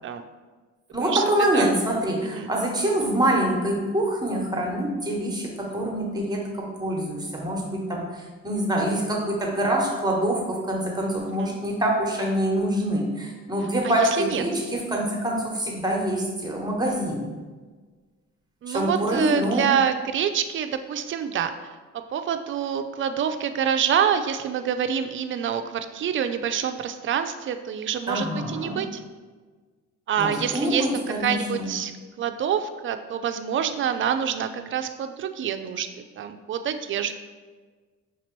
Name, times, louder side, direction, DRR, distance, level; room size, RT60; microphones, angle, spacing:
voice 1, 0.9-17.3 18.7-19.7 28.1-28.8 30.2-31.7, right 1 dB, 15° right, -1 dB, 1.1 m, -25 dB
voice 2, 13.8-14.4 18.6-21.5 22.1-29.0 30.1-31.9 32.2-35.9 36.2-37.2, right 8 dB, 40° right, 8 dB, 0.4 m, -26 dB
5.8 x 2.9 x 3.1 m, 1.4 s
cardioid pair, 90°, 30 cm